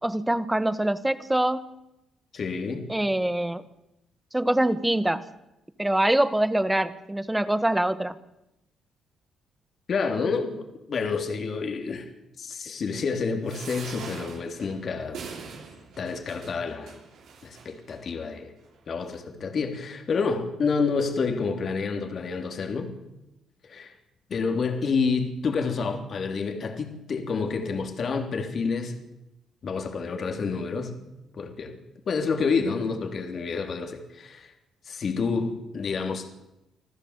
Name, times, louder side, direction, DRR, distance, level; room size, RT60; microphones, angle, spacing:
voice 1, 0.0-1.6 2.9-3.6 4.3-5.2 5.8-8.2, right 1 dB, 10° right, 13 dB, 1.5 m, -24 dB
voice 2, 2.3-2.9 9.9-12.1 12.4-15.2 16.0-16.9 17.4-18.5 18.9-22.9 23.6-23.9 24.3-29.0 29.6-31.0 31.3-31.8 32.1-34.5 34.9-36.3, left 5 dB, 50° left, 5 dB, 3.3 m, -29 dB
sound 1, 13.4-18.0 18.6-18.7 19.0-19.1, right 5 dB, 75° right, 6.4 m, -43 dB
26.0 x 14.5 x 8.2 m, 0.91 s
cardioid pair, 90°, 0 cm